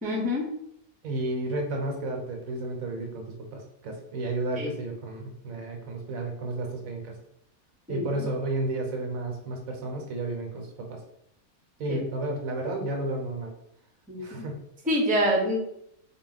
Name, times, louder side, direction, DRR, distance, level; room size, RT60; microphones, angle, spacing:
voice 1, 0.0-0.5 4.6-4.7 7.9-8.2 14.1-14.4 14.9-15.6, equal, 10° right, -2 dB, 0.7 m, -26 dB
voice 2, 1.0-7.1 7.9-11.0 11.8-13.5 14.2-14.7, right 2 dB, 75° right, 2 dB, 1.2 m, -32 dB
4.0 x 2.2 x 3.9 m, 0.72 s
omnidirectional pair, 1.5 m